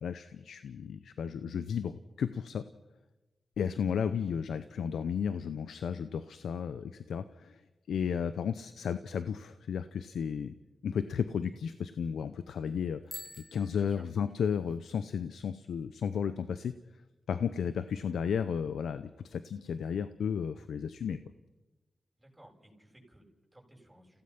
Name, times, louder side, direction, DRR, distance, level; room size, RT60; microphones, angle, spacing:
voice 1, 0.0-2.6 3.6-7.6 7.9-10.5 10.8-13.2 13.5-16.7 17.3-21.2, left 7 dB, 90° left, 12 dB, 0.6 m, -33 dB
Bicycle bell, 13.0-14.8, left 1 dB, 20° left, 3.1 m, -48 dB
voice 2, 13.7-14.1 22.2-24.2, right 1 dB, 15° right, -1 dB, 7.4 m, -58 dB
30.0 x 16.5 x 5.8 m, 1.1 s
cardioid pair, 50°, 0 cm